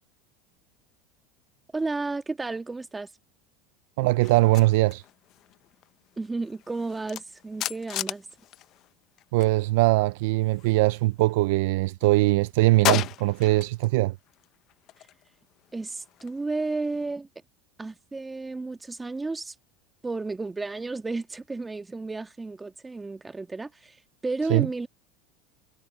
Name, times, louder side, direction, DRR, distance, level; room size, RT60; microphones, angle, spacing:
voice 1, 1.7-3.1 6.2-8.3 15.7-17.3 17.8-19.5 20.0-24.0 24.2-24.9, right 3 dB, 15° right, 1.6 m, -32 dB
voice 2, 4.0-5.0 9.3-14.2 24.5-24.7, right 19 dB, 75° right, 0.4 m, -21 dB
sound 1, 4.2-9.6 9.8-11.5 11.8-13.9 14.3-17.0, left 14 dB, 50° left, 0.7 m, -36 dB
supercardioid pair, 120°, 0 cm